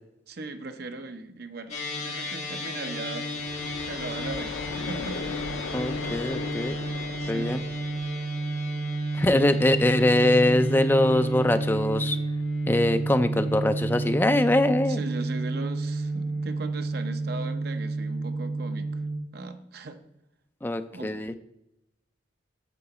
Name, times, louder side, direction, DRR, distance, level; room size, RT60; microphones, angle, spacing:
voice 1, 0.3-3.3 3.9-5.3 7.2-7.6 14.9-19.0 19.3-20.0 20.9-21.1, right 3 dB, 55° right, 7 dB, 0.7 m, -38 dB
sound 1, 1.7-19.2, right 2 dB, 35° left, 1.5 m, -31 dB
sound 2, 3.3-9.1, left 4 dB, 80° left, 0.5 m, -38 dB
voice 2, 5.7-6.8 7.3-7.6 9.2-12.2 12.7-15.0 20.6-21.4, left 1 dB, 10° left, 10 dB, 0.3 m, -23 dB
8.4 x 3.9 x 6.7 m, 0.86 s
head